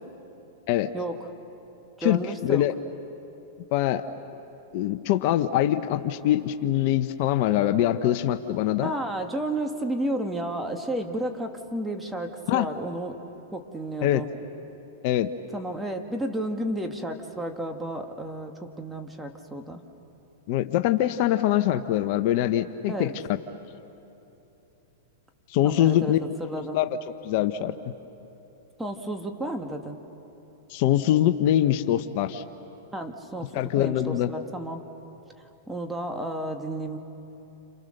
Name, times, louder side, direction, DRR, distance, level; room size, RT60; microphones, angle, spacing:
voice 1, 0.9-1.3 2.0-2.6 8.8-13.2 13.5-14.3 15.5-19.8 22.8-23.1 25.6-26.1 26.4-26.8 28.8-30.0 32.9-34.8 35.7-37.0, right 1 dB, 5° right, 4 dB, 1.9 m, -32 dB
voice 2, 2.0-2.7 3.7-4.0 4.7-8.9 12.5-12.7 14.0-14.2 15.0-15.3 20.5-23.1 25.5-26.2 26.7-27.0 27.2-27.7 30.7-32.4 33.5-34.3, left 12 dB, 55° left, 9 dB, 0.9 m, -23 dB
29.5 x 27.5 x 6.6 m, 3.0 s
hypercardioid pair, 115°, 0 cm